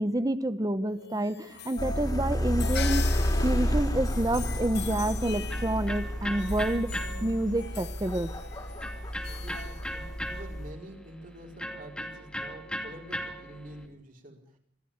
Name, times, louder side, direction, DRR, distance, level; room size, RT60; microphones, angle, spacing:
voice 1, 0.0-6.9 7.2-8.3, right 1 dB, 20° right, 14 dB, 0.9 m, -29 dB
sound 1, 0.9-10.4, left 7 dB, 65° left, 1.2 m, -42 dB
sound 2, 1.8-10.7, equal, 20° left, 3.8 m, -30 dB
Electric guitar, 4.8-13.9, equal, 5° left, 2.4 m, -40 dB
voice 2, 9.4-14.4, equal, 50° right, 1 dB, 4.7 m, -47 dB
26.0 x 13.5 x 8.7 m, 0.68 s
head